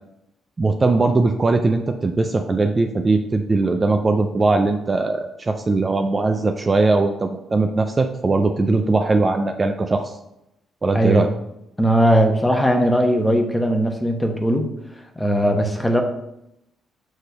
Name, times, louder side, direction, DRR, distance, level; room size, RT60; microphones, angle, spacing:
voice 1, 0.6-10.2 10.8-11.3, right 3 dB, 30° right, 5 dB, 0.5 m, -20 dB
voice 2, 10.9-11.3 11.8-14.7 15.2-16.0, equal, 10° left, 4 dB, 1.0 m, -19 dB
6.3 x 3.3 x 5.6 m, 0.84 s
cardioid pair, 90°, 0 cm